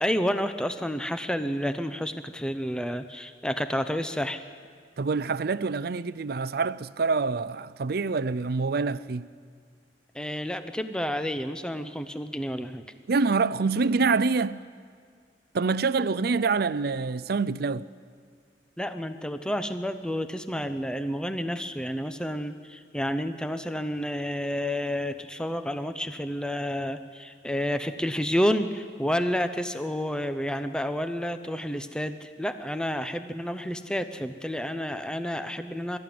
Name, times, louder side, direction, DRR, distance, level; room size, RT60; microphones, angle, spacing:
voice 1, 0.0-4.4 10.1-12.8 18.8-36.0, equal, 5° left, 0.7 m, -30 dB
voice 2, 5.0-9.3 13.1-14.6 15.5-17.9, right 4 dB, 60° right, 0.5 m, -26 dB
23.0 x 13.5 x 9.4 m
head